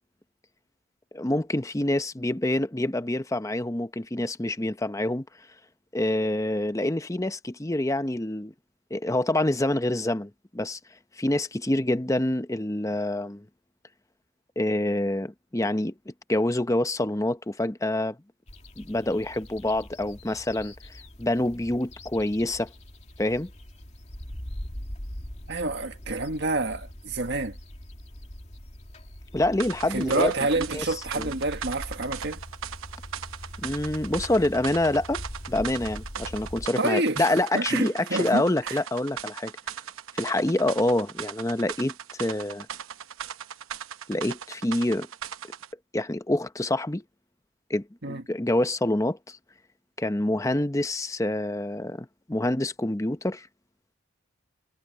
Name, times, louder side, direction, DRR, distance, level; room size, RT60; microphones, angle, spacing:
voice 1, 1.1-5.2 5.9-8.5 8.9-10.8 11.2-13.4 14.6-18.2 18.8-20.7 21.2-22.7 23.2-23.5 29.3-30.9 31.1-31.3 33.6-39.5 40.1-41.9 42.2-42.7 44.1-45.1 45.9-47.0 47.7-49.4 50.0-53.5, left 1 dB, 15° left, 0.8 m, -26 dB
sound 1, 18.5-36.7, equal, 35° left, 2.3 m, -42 dB
voice 2, 25.5-27.6 29.9-32.4 36.8-38.8 48.0-48.2, right 2 dB, 55° right, 1.8 m, -28 dB
sound 2, 29.6-45.7, right 8 dB, 90° right, 0.9 m, -39 dB
head